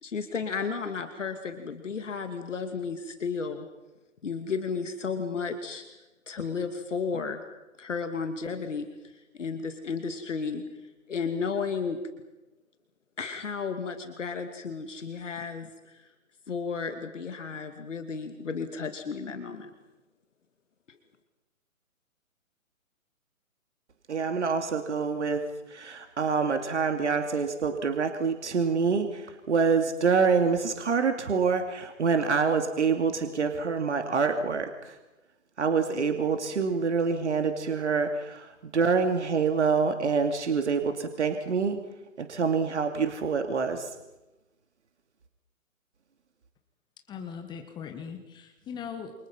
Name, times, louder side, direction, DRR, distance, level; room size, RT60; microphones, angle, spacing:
voice 1, 0.0-3.7 4.2-5.8 6.3-7.4 7.8-10.6 11.1-12.0 13.2-16.1 16.5-19.7 20.9-21.0, left 5 dB, 60° left, 7 dB, 2.6 m, -33 dB
voice 2, 24.1-25.4 25.7-34.9 35.6-41.8 42.2-43.9, right 5 dB, 55° right, 6 dB, 2.7 m, -26 dB
voice 3, 47.1-49.1, left 7 dB, 10° left, 5 dB, 1.5 m, -39 dB
29.0 x 29.0 x 5.7 m, 1.0 s
figure-of-eight pair, 135°, 41 cm